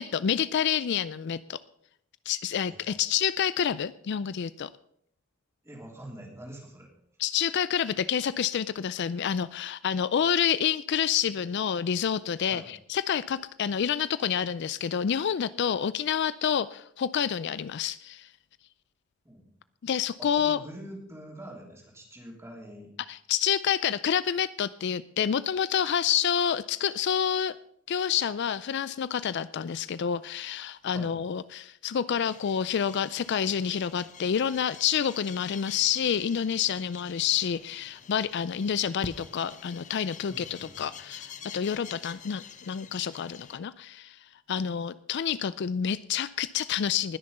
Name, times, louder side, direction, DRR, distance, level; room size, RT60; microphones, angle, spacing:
voice 1, 0.0-1.6 2.3-4.7 7.2-18.3 19.8-20.6 23.1-27.6 27.9-44.2 44.5-47.2, left 8 dB, 55° left, 16 dB, 0.4 m, -28 dB
voice 2, 5.6-6.9 12.4-12.7 19.2-19.5 20.2-22.9 30.9-31.2 40.3-41.0, right 1 dB, 15° right, 0 dB, 3.1 m, -45 dB
sound 1, 32.2-43.6, left 6 dB, 35° left, 0.8 m, -47 dB
20.0 x 6.7 x 5.4 m, 0.70 s
head